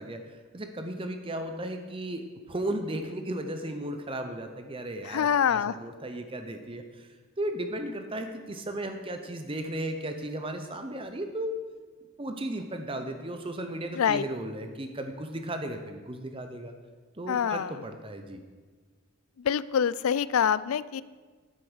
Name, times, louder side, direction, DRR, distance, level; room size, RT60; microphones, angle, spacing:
voice 1, 0.0-7.1 7.4-11.6 12.2-16.7 17.2-18.4, right 1 dB, 25° right, 6 dB, 0.7 m, -35 dB
voice 2, 5.1-5.8 13.9-14.2 17.3-17.7 19.4-21.0, left 8 dB, 90° left, 18 dB, 0.4 m, -25 dB
9.5 x 8.4 x 6.3 m, 1.4 s
head